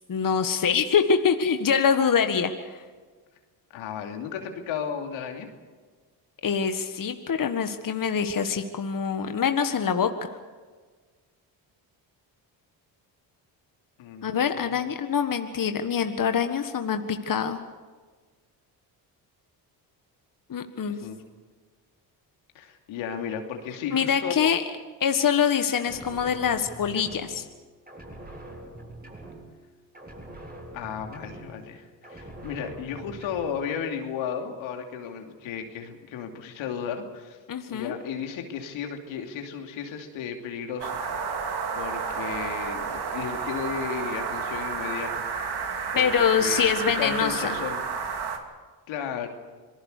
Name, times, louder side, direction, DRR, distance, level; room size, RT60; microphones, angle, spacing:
voice 1, 0.1-2.8 6.4-10.1 14.2-17.6 20.5-21.0 23.9-24.6 25.0-27.4 37.5-38.0 45.9-47.6, left 7 dB, 45° left, 7 dB, 1.7 m, -24 dB
voice 2, 3.7-5.5 14.0-14.8 21.0-21.2 22.5-24.5 30.7-37.4 37.7-41.0 41.7-45.3 45.9-46.7 47.0-47.9 48.9-49.3, left 7 dB, 80° left, 4 dB, 2.8 m, -34 dB
sound 1, 25.8-27.6 27.9-29.7 29.9-31.8 32.0-33.7, right 1 dB, 20° right, 7.9 m, -44 dB
sound 2, 40.8-48.4, right 5 dB, 55° right, 3.0 m, -31 dB
26.5 x 19.0 x 6.7 m, 1.4 s
supercardioid pair, 65°, 46 cm